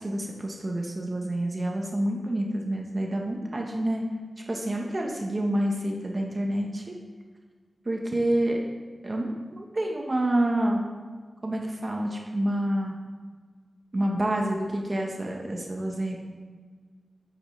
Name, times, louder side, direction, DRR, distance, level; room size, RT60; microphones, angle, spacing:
voice 1, 0.0-4.0 4.5-6.9 7.8-8.6 9.0-10.8 11.4-12.9 13.9-16.2, right 1 dB, 35° right, 0 dB, 1.1 m, -28 dB
8.4 x 8.0 x 3.3 m, 1.5 s
wide cardioid pair, 105°, 0 cm